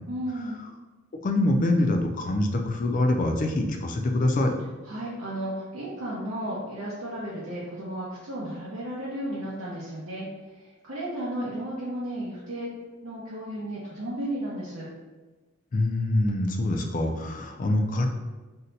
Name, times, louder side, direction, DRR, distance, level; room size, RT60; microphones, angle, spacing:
voice 1, 0.1-0.6 4.8-10.3 10.5-12.7 13.0-14.9, right 1 dB, 75° right, -7 dB, 0.6 m, -34 dB
voice 2, 1.2-4.5 15.7-18.1, left 1 dB, 40° left, 3 dB, 0.3 m, -24 dB
2.7 x 2.1 x 3.9 m, 1.2 s
head